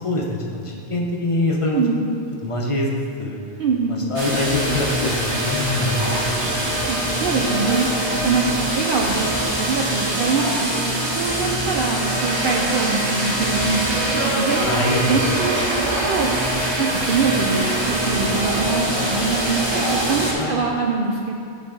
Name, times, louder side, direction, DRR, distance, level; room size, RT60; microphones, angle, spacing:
voice 1, 0.0-1.8 2.4-2.9 3.2-3.4 3.9-6.8 14.6-15.3 20.4-20.7, left 1 dB, 35° left, -1 dB, 0.7 m, -24 dB
voice 2, 1.7-2.0 3.6-4.0 6.9-7.9 8.2-13.8 14.2-14.8 15.1-17.6 18.0-21.3, right 4 dB, 60° right, 0 dB, 0.7 m, -24 dB
sound 1, 4.1-20.3, right 1 dB, 25° right, 0.9 m, -23 dB
10.5 x 4.2 x 3.7 m, 2.4 s
omnidirectional pair, 1.1 m